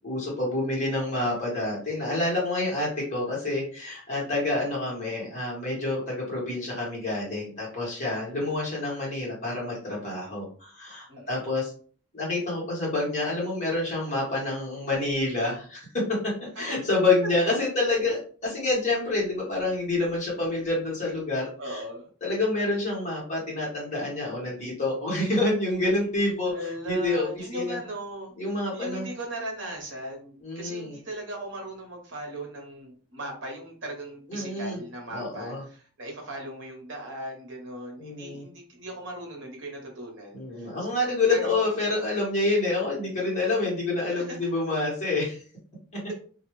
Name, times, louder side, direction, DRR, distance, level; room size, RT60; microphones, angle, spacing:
voice 1, 0.0-11.7 12.1-21.8 22.2-27.3 27.5-27.8 28.4-29.1 30.4-31.0 34.3-34.8 35.1-35.6 38.0-38.4 40.3-45.4 45.9-46.0, left 2 dB, 35° left, -4 dB, 1.3 m, -28 dB
voice 2, 11.1-11.4 17.2-17.3 21.6-22.1 26.5-28.3 28.7-40.7 41.3-41.6 44.1-44.4, right 1 dB, 55° right, 0 dB, 1.0 m, -38 dB
2.6 x 2.3 x 3.1 m, 0.42 s
head